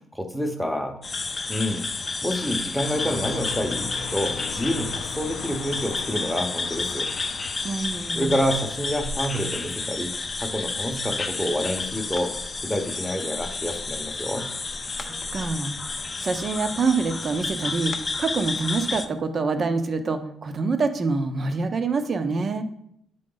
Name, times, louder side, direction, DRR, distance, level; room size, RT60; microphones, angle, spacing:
voice 1, 0.1-1.0 1.2-1.9 2.2-7.1 8.2-10.1 10.4-12.3 12.6-14.5, equal, ahead, 4 dB, 0.9 m, -28 dB
sound 1, 1.0-19.0, left 3 dB, 35° left, 0.5 m, -31 dB
sound 2, 2.8-9.9, left 6 dB, 85° left, 0.4 m, -39 dB
voice 2, 7.6-8.3 15.0-15.7 16.2-22.6, right 4 dB, 45° right, 8 dB, 0.7 m, -26 dB
8.3 x 3.8 x 3.9 m, 0.73 s
cardioid pair, 90°, 0 cm